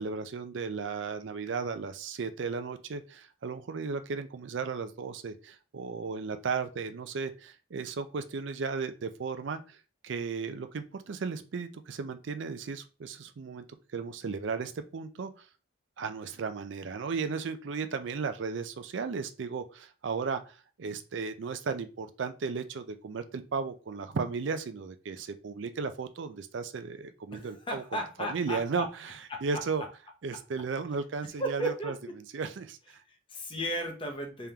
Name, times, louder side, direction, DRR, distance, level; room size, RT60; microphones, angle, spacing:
voice 1, 0.0-9.8 10.0-13.6 13.9-15.5 16.0-29.8 30.2-31.9 32.3-33.0, right 5 dB, 65° right, 10 dB, 0.4 m, -35 dB
voice 2, 27.3-28.9 29.3-29.4 31.4-31.9 33.1-34.5, equal, 25° left, 3 dB, 0.7 m, -35 dB
3.6 x 3.4 x 2.8 m, 0.33 s
head